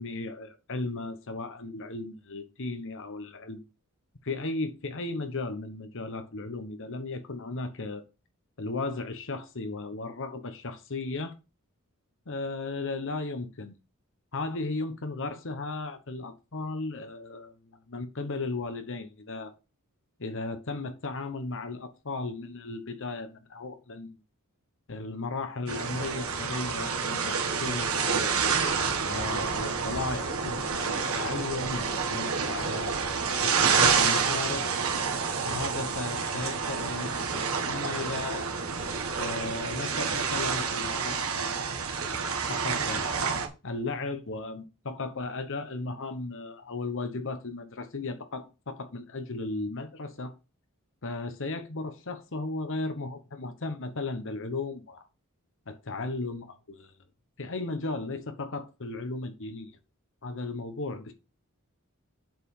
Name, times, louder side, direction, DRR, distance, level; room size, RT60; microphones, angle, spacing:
voice 1, 0.0-3.6 4.2-8.0 8.6-11.3 12.3-13.7 14.3-19.5 20.2-24.2 24.9-28.4 29.1-32.9 33.4-34.7 35.4-38.5 39.2-43.1 43.6-50.3 51.0-55.1 55.7-57.0 57.4-59.8 60.2-61.1, left 3 dB, 60° left, 1.2 m, -35 dB
sound 1, 25.7-43.5, right 5 dB, 70° right, 1.8 m, -28 dB
7.7 x 5.0 x 5.5 m
head